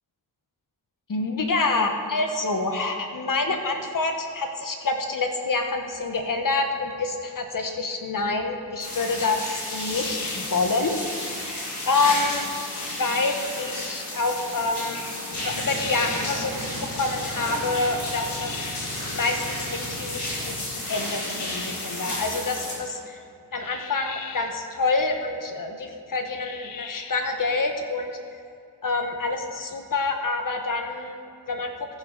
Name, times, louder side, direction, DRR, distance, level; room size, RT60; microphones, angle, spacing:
voice 1, 1.1-11.0 11.3-12.4 13.0-15.0 15.3-16.7 16.9-18.6 19.1-20.5 20.9-23.2 23.5-28.1 28.8-31.2 31.5-31.7, left 3 dB, 50° left, 5 dB, 1.1 m, -27 dB
sound 1, 8.8-22.7, left 1 dB, 65° left, 3.0 m, -32 dB
sound 2, 9.7-10.7 12.6-13.6 15.3-16.4 18.0-19.0 20.9-22.0 23.6-24.6 26.2-27.3, left 8 dB, 85° left, 0.7 m, -41 dB
sound 3, 15.3-20.6, right 1 dB, 50° right, 1.8 m, -40 dB
14.5 x 6.3 x 5.3 m, 2.4 s
wide cardioid pair, 90°, 43 cm